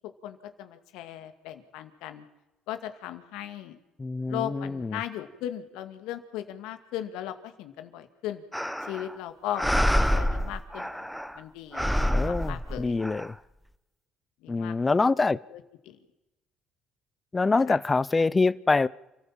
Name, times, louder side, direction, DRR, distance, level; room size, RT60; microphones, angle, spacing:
voice 1, 0.2-2.2 2.7-3.8 4.3-8.4 8.8-10.9 11.3-13.0 14.4-14.9 15.5-15.6 15.9-16.0 17.7-17.8, left 11 dB, 80° left, 2.1 m, -37 dB
voice 2, 4.0-5.0 12.0-13.4 14.5-15.4 17.3-18.9, left 3 dB, 25° left, 0.8 m, -25 dB
sound 1, 8.5-9.2 9.5-11.4 11.7-13.3, equal, ahead, 1.2 m, -27 dB
29.0 x 14.5 x 7.5 m
hypercardioid pair, 60°, 0 cm